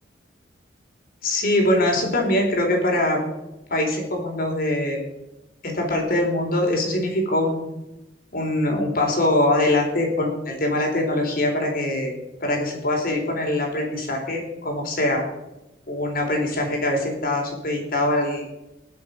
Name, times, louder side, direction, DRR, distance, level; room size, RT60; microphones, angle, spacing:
voice 1, 1.2-3.2 3.7-5.0 5.6-7.6 8.3-12.1 12.4-15.2 15.9-18.4, left 1 dB, 55° left, 1 dB, 4.3 m, -23 dB
21.0 x 7.6 x 5.3 m, 0.95 s
head